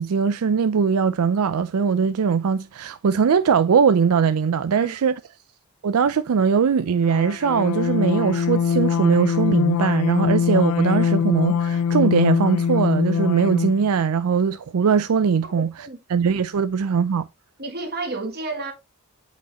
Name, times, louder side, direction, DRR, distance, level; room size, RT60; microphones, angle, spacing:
voice 1, 0.0-5.2 5.8-15.7 16.1-17.2, right 6 dB, 80° right, 0.4 m, -20 dB
sound 1, 7.1-13.9, left 7 dB, 80° left, 0.4 m, -22 dB
voice 2, 15.6-16.0 17.6-18.7, right 2 dB, 45° right, 1.5 m, -31 dB
8.0 x 5.1 x 2.9 m
head